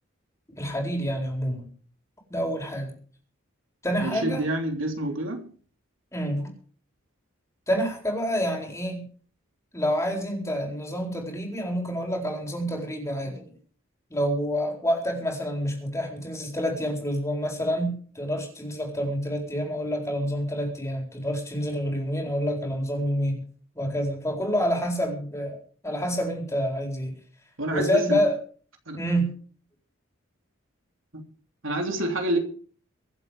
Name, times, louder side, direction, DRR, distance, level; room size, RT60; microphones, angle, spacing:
voice 1, 0.5-1.7 2.3-2.9 3.8-4.5 6.1-6.5 7.7-9.1 9.7-13.5 14.1-23.4 23.7-25.6 25.8-27.2 27.7-28.3 29.0-29.4, equal, 15° left, 4.2 m, -28 dB
voice 2, 4.0-5.4 27.6-28.2 28.9-29.0 31.1-31.2 31.6-32.4, right 1 dB, 70° right, 3.2 m, -27 dB
24.5 x 8.2 x 4.9 m
head